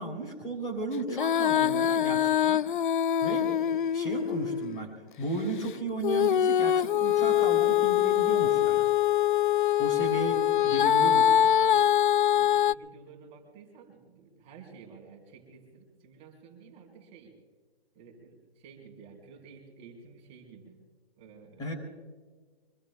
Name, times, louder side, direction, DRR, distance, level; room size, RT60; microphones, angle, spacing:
voice 1, 0.0-2.6 3.2-3.6 3.9-4.9 5.2-8.9 9.8-11.3 21.6-21.7, right 2 dB, 15° left, 1 dB, 3.6 m, -34 dB
Female singing, 1.1-4.8 6.0-12.7, left 10 dB, 55° left, 0.4 m, -24 dB
voice 2, 10.0-10.8 11.6-11.9 12.3-17.3 17.9-20.8 21.2-21.6, right 5 dB, 20° right, 0 dB, 4.4 m, -52 dB
25.5 x 22.0 x 2.3 m, 1.5 s
hypercardioid pair, 150°, 30 cm